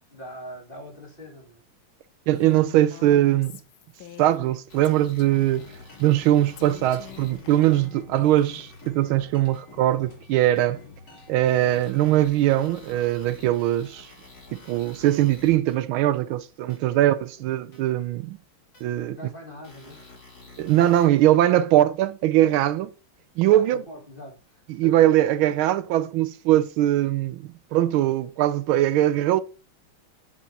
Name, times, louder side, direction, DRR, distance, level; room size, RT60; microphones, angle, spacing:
voice 1, 0.1-1.6 16.9-17.2 19.1-20.0 23.4-25.1, equal, 25° left, 2.0 m, -42 dB
Female speech woman speaking, 2.3-4.6 4.8-5.6 6.6-8.7, left 12 dB, 75° left, 1.6 m, -44 dB
voice 2, 2.3-3.6 4.2-5.7 6.0-10.8 11.3-14.1 14.5-18.4 18.8-19.2 20.6-22.9 23.4-23.8 24.7-29.4, right 13 dB, 80° right, 1.4 m, -21 dB
sound 1, 4.7-7.9 8.4-8.9 9.5-9.6 10.6-10.7 11.4-15.7 16.7-16.8 17.7-17.8 18.7-18.8 19.6-21.1, left 3 dB, 60° left, 4.0 m, -49 dB
sound 2, 5.4-12.3, left 3 dB, 40° left, 3.6 m, -47 dB
9.5 x 7.0 x 2.8 m
omnidirectional pair, 2.3 m